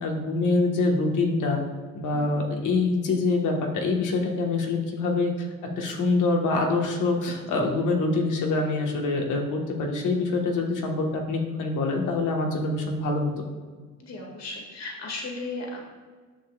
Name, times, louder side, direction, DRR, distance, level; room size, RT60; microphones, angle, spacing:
voice 1, 0.0-1.6 1.9-13.3, left 3 dB, 80° left, 1 dB, 1.4 m, -25 dB
voice 2, 14.0-15.9, left 2 dB, 60° left, 0 dB, 2.0 m, -36 dB
9.9 x 6.8 x 2.4 m, 1.5 s
cardioid pair, 90°, 30 cm